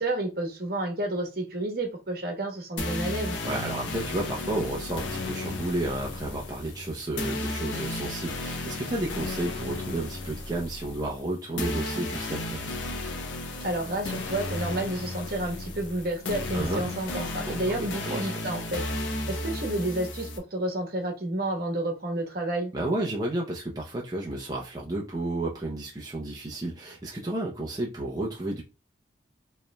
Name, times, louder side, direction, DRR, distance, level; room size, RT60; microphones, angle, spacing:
voice 1, 0.0-3.4 13.6-18.8 19.3-22.7, right 1 dB, 50° right, 1.1 m, -30 dB
sound 1, 2.8-20.4, left 2 dB, 85° left, 0.9 m, -34 dB
voice 2, 3.4-12.6 16.5-16.8 17.4-18.4 22.7-28.6, right 1 dB, 20° right, 0.7 m, -32 dB
4.9 x 3.2 x 2.2 m
head